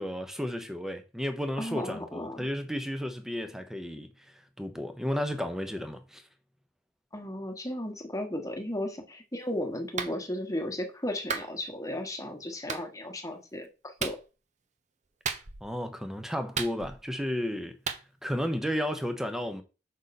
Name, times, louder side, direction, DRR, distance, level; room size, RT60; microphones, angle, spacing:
voice 1, 0.0-6.2 15.6-17.8 18.2-19.6, equal, 5° right, 0.8 m, -33 dB
voice 2, 1.6-2.5 7.1-14.2, left 1 dB, 20° left, 1.3 m, -35 dB
Clapping, 10.0-10.2 11.3-11.5 12.7-12.8 14.0-14.2 15.2-15.7 16.5-17.1 17.9-18.0, right 5 dB, 40° right, 0.8 m, -33 dB
6.5 x 5.4 x 4.2 m
head